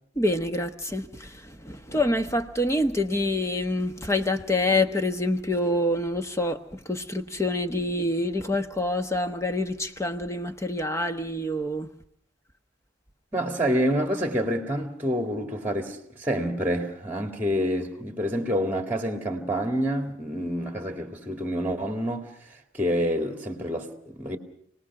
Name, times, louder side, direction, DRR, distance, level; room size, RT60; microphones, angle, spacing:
voice 1, 0.1-11.9, left 1 dB, 15° left, 1.1 m, -26 dB
voice 2, 13.3-24.4, equal, 10° right, 2.1 m, -28 dB
28.5 x 19.0 x 6.0 m
head